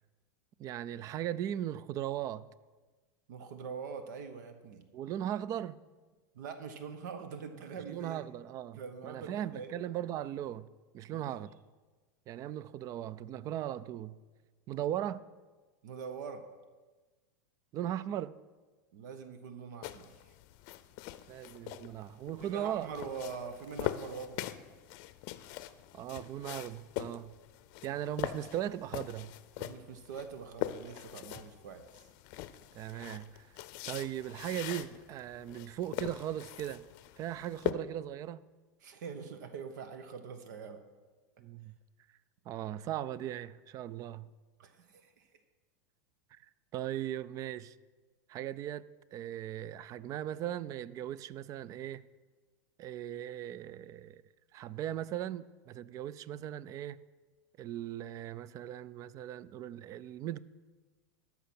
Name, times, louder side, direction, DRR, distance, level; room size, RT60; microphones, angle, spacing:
voice 1, 0.6-2.5 4.9-5.8 7.9-10.7 10.9-11.5 12.3-14.2 14.7-15.2 17.7-18.3 21.3-22.9 25.9-27.3 27.8-29.3 32.7-33.5 33.9-36.8 37.2-38.4 41.4-41.7 42.5-44.3 46.3-46.4 46.7-47.7 48.3-48.9 49.1-52.1 52.8-54.2 54.5-57.0 57.6-60.4, right 11 dB, 35° right, 0.4 m, -38 dB
voice 2, 3.3-4.8 6.3-8.2 8.7-9.7 11.1-11.4 15.8-16.4 18.9-20.3 22.4-24.5 27.9-28.1 29.6-32.1 38.8-40.8 44.6-45.3, right 6 dB, 75° right, 0.9 m, -44 dB
sound 1, 19.8-37.7, left 15 dB, 50° left, 0.6 m, -42 dB
14.0 x 5.8 x 6.0 m
supercardioid pair, 120°, 10 cm